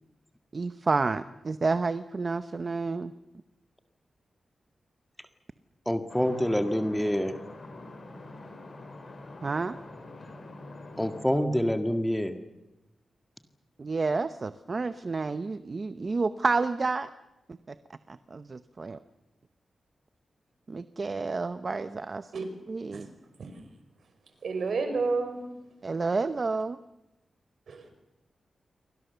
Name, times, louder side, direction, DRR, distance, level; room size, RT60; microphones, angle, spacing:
voice 1, 0.5-3.1 9.4-9.8 13.8-17.1 17.5-17.8 18.1-19.0 20.7-22.3 22.7-23.1 25.8-26.8, right 3 dB, 35° right, 11 dB, 0.8 m, -30 dB
voice 2, 5.8-7.3 11.0-12.3, equal, 5° left, 7 dB, 1.8 m, -26 dB
sound 1, 6.1-11.3, left 2 dB, 40° left, 6.3 m, -45 dB
voice 3, 24.4-25.4 27.7-27.8, right 4 dB, 65° right, 7 dB, 5.4 m, -30 dB
28.0 x 24.5 x 6.9 m, 0.96 s
wide cardioid pair, 150°, 0 cm